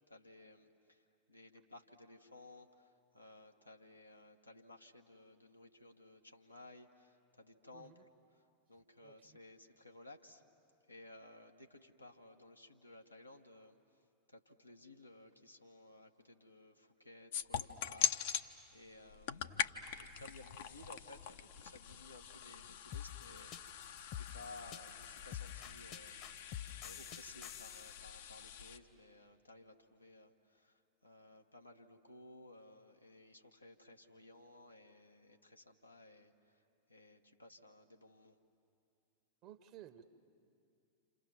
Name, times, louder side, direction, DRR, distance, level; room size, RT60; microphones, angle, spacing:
voice 1, 0.1-10.4 10.9-14.0 14.3-23.5 24.1-38.4, left 2 dB, 85° left, 2 dB, 1.4 m, -58 dB
voice 2, 7.7-8.1 9.0-9.4 39.4-40.0, right 11 dB, 40° right, 10 dB, 1.2 m, -56 dB
sound 1, 17.3-18.4 19.1-28.8, left 9 dB, 55° left, 0.9 m, -43 dB
sound 2, 22.9-28.0, left 10 dB, 40° left, 1.2 m, -47 dB
28.5 x 28.5 x 7.3 m, 2.4 s
figure-of-eight pair, 90°, 0 cm